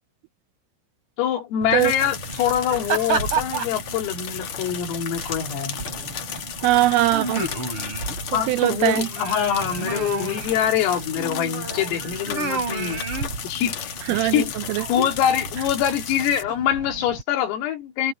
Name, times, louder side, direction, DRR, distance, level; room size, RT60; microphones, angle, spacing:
voice 1, 1.2-5.8 8.3-13.0 13.4-14.5 14.9-18.1, left 9 dB, 90° left, 5.6 m, -24 dB
sound 1, 1.6-17.2, right 3 dB, 30° right, 3.5 m, -32 dB
rain in gutter large drops splat, 1.8-16.4, left 9 dB, 70° left, 1.7 m, -35 dB
voice 2, 6.6-7.4 8.5-9.1 14.1-14.8, right 16 dB, 80° right, 3.4 m, -21 dB
open air
omnidirectional pair, 5.8 m